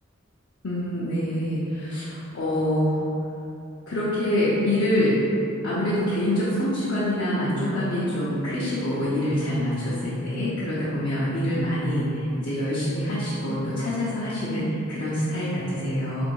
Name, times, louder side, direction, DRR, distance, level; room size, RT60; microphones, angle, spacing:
voice 1, 0.6-3.0 3.9-5.2 5.6-16.3, left 1 dB, 55° left, -9 dB, 0.6 m, -25 dB
3.5 x 2.6 x 4.5 m, 2.8 s
head